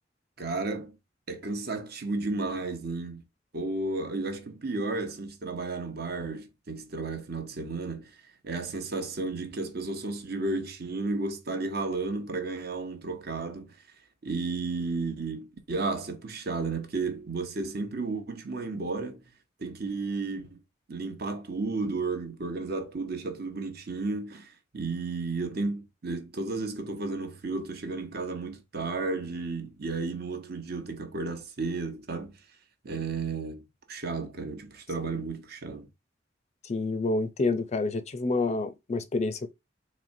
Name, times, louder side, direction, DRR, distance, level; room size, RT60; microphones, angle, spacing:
voice 1, 0.4-1.0 1.3-3.2 3.5-8.2 8.4-13.8 14.2-19.2 19.6-20.6 20.9-32.3 32.8-35.9, right 3 dB, 55° right, 0.9 m, -33 dB
voice 2, 36.6-39.5, left 3 dB, 35° left, 0.4 m, -28 dB
4.2 x 3.2 x 2.6 m
head